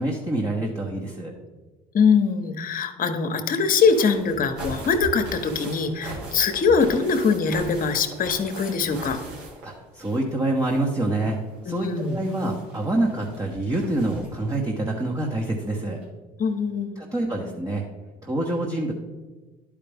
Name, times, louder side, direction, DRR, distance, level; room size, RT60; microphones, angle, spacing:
voice 1, 0.0-1.3 9.6-11.4 11.6-16.0 17.0-17.8 18.2-18.9, right 1 dB, 20° right, -1 dB, 1.2 m, -26 dB
voice 2, 1.9-9.2 11.7-12.2 16.4-17.0, left 5 dB, 50° left, 8 dB, 1.0 m, -22 dB
sound 1, 3.5-10.3 10.6-14.5 15.6-15.7 16.0-16.1, right 2 dB, 75° right, 2.3 m, -40 dB
11.0 x 5.0 x 3.5 m, 1.3 s
supercardioid pair, 70°, 19 cm